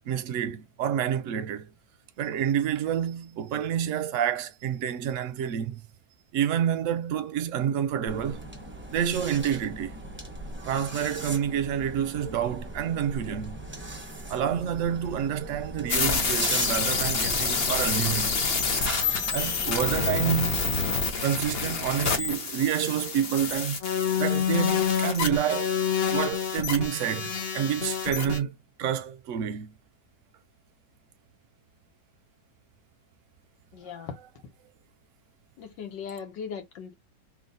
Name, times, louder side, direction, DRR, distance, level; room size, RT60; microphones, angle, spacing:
voice 1, 0.1-1.7 2.2-5.8 6.3-8.4 8.9-10.0 10.6-13.6 14.3-18.4 19.3-20.8 21.2-23.8 24.2-25.7 26.1-29.7 34.0-34.1, right 9 dB, 65° right, 0.8 m, -28 dB
sound 1, 8.1-20.0, right 1 dB, 20° right, 0.3 m, -39 dB
sound 2, 15.9-28.4, left 6 dB, 50° left, 0.8 m, -27 dB
voice 2, 33.7-34.2 35.6-36.9, left 7 dB, 80° left, 1.7 m, -38 dB
4.0 x 2.4 x 3.9 m
omnidirectional pair, 1.9 m